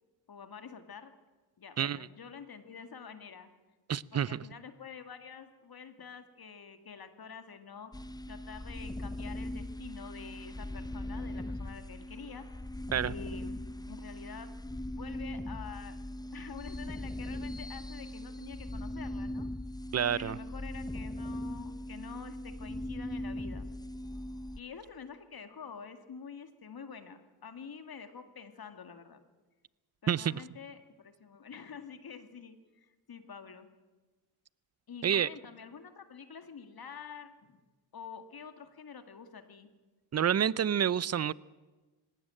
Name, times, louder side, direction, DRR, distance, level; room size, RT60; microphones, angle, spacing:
voice 1, 0.3-1.1 1.6-3.5 4.1-7.9 8.3-12.5 12.7-13.6 13.9-14.5 14.9-16.0 16.3-19.5 20.1-23.7 24.6-29.2 30.1-33.7 34.9-37.6 37.9-39.7, left 6 dB, 50° left, 8 dB, 2.1 m, -47 dB
voice 2, 3.9-4.4 12.9-13.1 19.9-20.4 30.1-30.4 35.0-35.3 40.1-41.3, right 9 dB, 35° right, 22 dB, 0.6 m, -28 dB
sound 1, 7.9-24.6, left 1 dB, 10° left, 0.9 m, -40 dB
19.0 x 17.0 x 9.0 m, 1.2 s
supercardioid pair, 60°, 46 cm